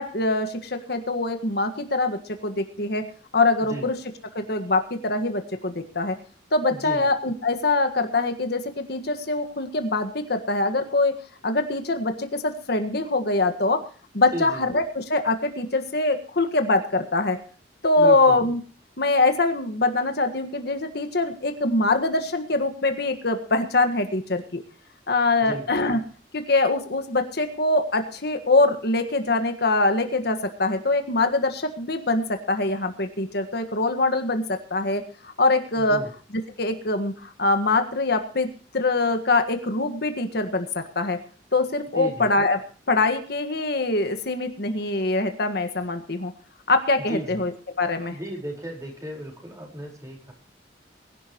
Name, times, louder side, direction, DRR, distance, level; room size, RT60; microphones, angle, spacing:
voice 1, 0.0-3.0 3.3-3.9 4.4-6.2 6.5-11.1 11.4-13.8 14.1-17.4 17.8-18.6 19.0-24.6 25.1-26.0 26.3-36.0 36.3-38.5 38.7-41.2 41.5-42.6 42.9-46.3 46.7-47.5 47.8-48.2, left 2 dB, 60° left, 7 dB, 1.7 m, -23 dB
voice 2, 6.7-7.1 14.3-14.6 18.0-18.4 25.4-25.7 35.7-36.1 41.9-42.3 47.1-47.4 48.0-50.3, equal, 20° right, 0 dB, 4.6 m, -34 dB
22.0 x 11.5 x 3.0 m, 0.40 s
head